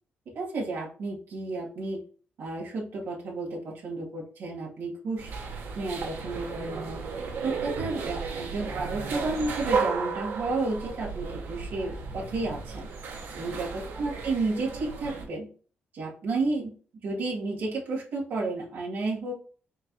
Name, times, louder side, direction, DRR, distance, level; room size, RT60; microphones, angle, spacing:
voice 1, 0.3-2.0 2.4-5.3 5.8-7.0 7.4-12.9 13.4-15.5 15.9-16.7 17.0-19.3, right 3 dB, 60° right, -3 dB, 1.7 m, -32 dB
sound 1, 5.2-15.3, right 5 dB, 80° right, 1.2 m, -34 dB
4.6 x 4.4 x 2.2 m, 0.39 s
wide cardioid pair, 175°, 4 cm